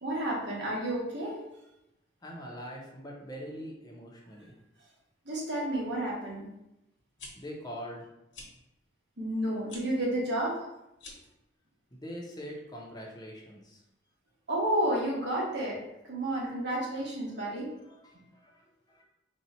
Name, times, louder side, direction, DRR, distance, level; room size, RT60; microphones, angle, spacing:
voice 1, 0.0-1.4 5.2-6.5 9.2-10.7 14.5-17.8, right 1 dB, 70° right, -4 dB, 1.3 m, -31 dB
voice 2, 2.2-4.5 7.4-8.1 11.9-13.8 17.3-17.5 17.8-19.0, equal, 20° left, -2 dB, 0.8 m, -43 dB
sound 1, 7.0-7.3 8.3-8.5 9.6-9.8 10.9-11.3, left 2 dB, 80° left, 1.0 m, -46 dB
4.2 x 2.4 x 4.1 m, 0.88 s
head